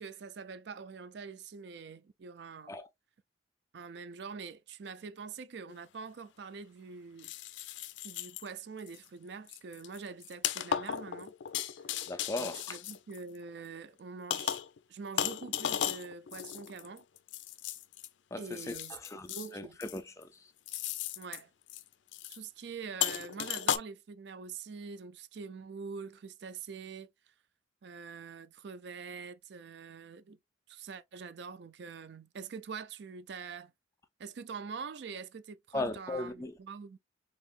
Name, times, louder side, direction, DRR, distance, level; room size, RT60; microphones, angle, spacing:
voice 1, 0.0-2.8 3.7-7.3 8.0-11.3 12.4-14.6 14.9-17.0 18.4-19.0 19.3-19.8 21.2-21.5 22.3-27.1 27.8-30.4 30.7-33.7 34.2-37.0, right 5 dB, 65° right, 0.4 m, -44 dB
sound 1, 5.7-5.8 7.2-8.5 8.9-9.1 9.5-13.6 14.3-14.8 15.2-18.1 18.5-19.5 19.8-20.2 20.7-21.4 21.7-21.8 22.1-22.4 23.0-23.8, left 9 dB, 80° left, 0.4 m, -36 dB
voice 2, 12.1-12.8 18.3-20.5 35.7-36.5, left 2 dB, 15° left, 0.4 m, -38 dB
4.5 x 3.0 x 2.4 m
head